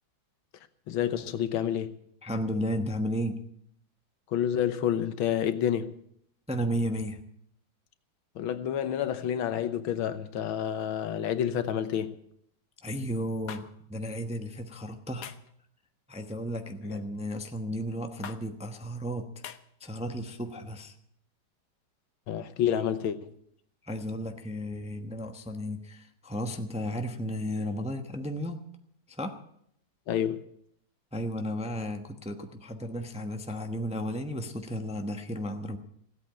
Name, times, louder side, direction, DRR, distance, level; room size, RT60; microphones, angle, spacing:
voice 1, 0.9-2.0 4.3-5.9 8.4-12.2 22.3-23.3 30.1-30.4, left 9 dB, 75° left, 1.7 m, -29 dB
voice 2, 2.2-3.4 6.5-7.2 12.8-15.3 16.1-19.5 19.8-20.9 23.8-28.6 29.1-29.4 31.1-35.8, equal, 10° right, 0.4 m, -34 dB
sound 1, 13.5-13.6 15.2-15.5 16.8-17.1 18.2-18.4 19.4-19.6, left 8 dB, 60° left, 1.0 m, -41 dB
16.5 x 8.6 x 8.7 m
omnidirectional pair, 2.3 m